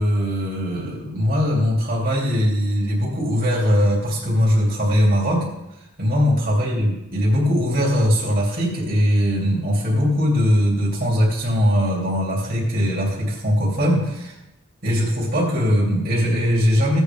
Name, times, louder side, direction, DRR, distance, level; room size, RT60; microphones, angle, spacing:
voice 1, 0.0-5.5 6.0-14.4 14.8-17.0, equal, 45° right, -5 dB, 2.8 m, -20 dB
16.5 x 8.1 x 3.5 m, 0.93 s
head